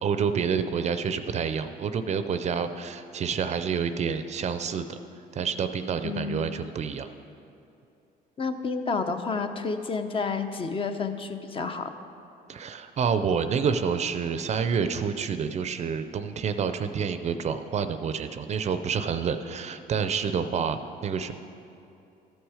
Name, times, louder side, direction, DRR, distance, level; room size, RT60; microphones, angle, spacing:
voice 1, 0.0-5.0 5.3-7.1 12.5-21.3, right 6 dB, 40° right, 10 dB, 0.5 m, -28 dB
voice 2, 6.0-6.5 8.4-11.9, left 4 dB, 30° left, 7 dB, 0.6 m, -30 dB
13.5 x 6.2 x 4.9 m, 2.7 s
cardioid pair, 110°, 17 cm